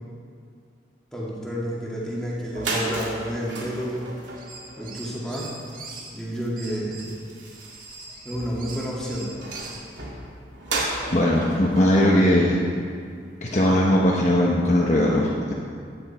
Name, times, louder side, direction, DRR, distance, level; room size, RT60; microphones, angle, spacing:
voice 1, 1.1-4.1 4.8-5.5 6.1-7.1 8.2-9.3, equal, 5° left, -6 dB, 2.5 m, -30 dB
sound 1, 2.1-2.2 2.4-13.2, right 2 dB, 85° right, 2.6 m, -35 dB
sound 2, 4.3-6.1 6.6-9.9, right 3 dB, 45° right, 1.8 m, -42 dB
voice 2, 11.1-12.6 13.4-15.5, left 1 dB, 40° left, -3 dB, 1.1 m, -19 dB
15.0 x 10.0 x 4.4 m, 2.2 s
head